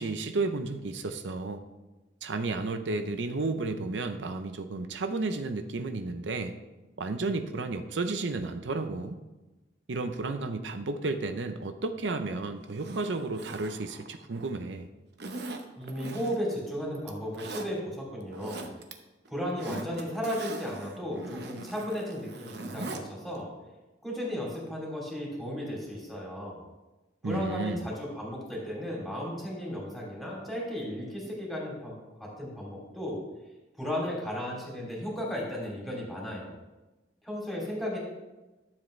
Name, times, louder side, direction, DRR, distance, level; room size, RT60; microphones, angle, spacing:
voice 1, 0.0-1.6 2.2-6.5 7.0-9.2 9.9-14.9 27.2-27.8, right 3 dB, 85° right, 8 dB, 0.6 m, -32 dB
Zipper (clothing), 12.7-14.6 15.2-16.6 17.0-17.7 18.2-18.9 19.3-23.0 23.4-23.5, right 2 dB, 65° right, 0.9 m, -41 dB
voice 2, 15.8-18.7 19.3-23.5 24.0-26.6 27.2-33.2 33.8-36.5 37.2-38.0, equal, ahead, -4 dB, 2.8 m, -35 dB
12.5 x 7.4 x 3.2 m, 1.1 s
head